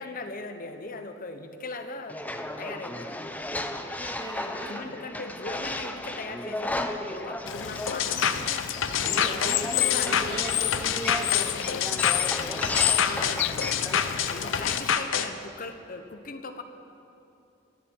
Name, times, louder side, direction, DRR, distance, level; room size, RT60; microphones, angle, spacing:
voice 1, 0.0-2.2 2.6-3.1 4.7-8.4 9.0-10.6 13.0-13.4 14.3-16.6, left 3 dB, 45° left, 7 dB, 1.0 m, -38 dB
sound 1, 2.1-14.8, left 1 dB, 10° left, 0.7 m, -35 dB
voice 2, 4.0-4.9 8.9-11.7 12.5-12.7 14.5-14.6, right 1 dB, 25° right, -1 dB, 2.2 m, -40 dB
Bird / Water, 7.5-14.9, left 16 dB, 65° left, 0.3 m, -30 dB
sound 2, 7.9-15.3, left 7 dB, 90° left, 0.7 m, -27 dB
25.5 x 11.0 x 4.6 m, 2.8 s
head